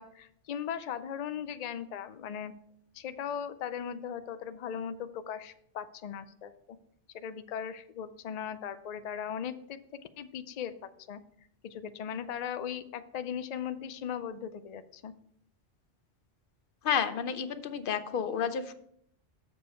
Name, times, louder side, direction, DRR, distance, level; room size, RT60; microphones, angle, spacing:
voice 1, 0.0-2.5 2.9-6.5 7.1-10.7 11.1-11.2 11.6-15.1, left 8 dB, 85° left, 11 dB, 0.3 m, -38 dB
voice 2, 16.8-18.7, left 7 dB, 55° left, 11 dB, 0.7 m, -30 dB
7.1 x 6.8 x 4.3 m, 0.69 s
omnidirectional pair, 1.3 m